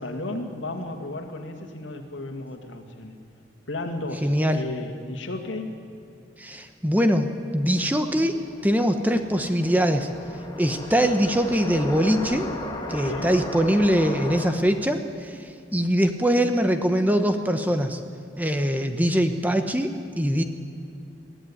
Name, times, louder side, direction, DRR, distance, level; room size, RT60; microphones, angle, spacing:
voice 1, 0.0-3.2 3.7-5.7 13.0-13.3, left 2 dB, 75° left, 4 dB, 2.3 m, -33 dB
voice 2, 4.2-4.6 6.4-10.1 10.6-12.5 12.9-15.4 15.7-18.0 18.4-20.4, equal, 10° right, 7 dB, 0.9 m, -22 dB
sound 1, 7.7-14.5, left 1 dB, 20° left, 2.2 m, -36 dB
21.5 x 14.0 x 10.0 m, 2.4 s
head